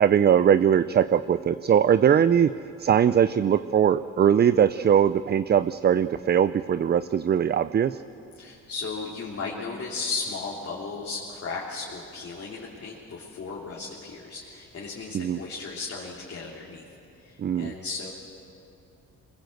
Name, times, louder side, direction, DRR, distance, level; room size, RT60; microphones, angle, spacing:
voice 1, 0.0-2.5 2.8-8.0 15.1-15.4 17.4-17.7, right 8 dB, 35° right, 14 dB, 0.5 m, -21 dB
voice 2, 8.3-16.8 17.2-18.1, left 4 dB, 50° left, -4 dB, 3.3 m, -35 dB
22.5 x 20.5 x 7.9 m, 2.7 s
cardioid pair, 90°, 30 cm